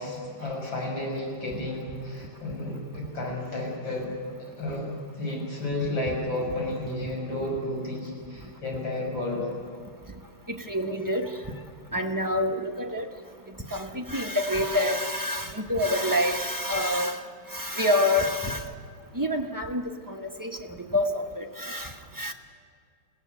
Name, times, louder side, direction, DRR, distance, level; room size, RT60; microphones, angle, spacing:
voice 1, 0.0-9.5, left 1 dB, 55° left, -2 dB, 6.8 m, -32 dB
voice 2, 10.5-11.4 11.9-13.1 13.7-17.2 17.5-18.7 19.1-22.3, left 1 dB, 25° right, 2 dB, 0.4 m, -27 dB
22.0 x 16.5 x 9.5 m, 2.2 s
omnidirectional pair, 2.4 m